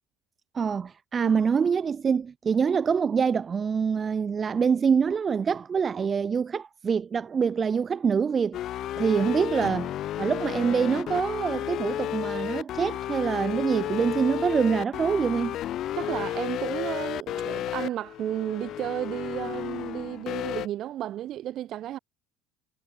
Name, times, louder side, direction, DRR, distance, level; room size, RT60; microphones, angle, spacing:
voice 1, 0.5-8.6 9.0-15.6, right 6 dB, 30° right, 0.4 m, -25 dB
sound 1, 8.5-20.7, left 12 dB, 55° left, 0.6 m, -32 dB
voice 2, 15.9-22.0, right 12 dB, 55° right, 0.9 m, -33 dB
supercardioid pair, 95°, 0 cm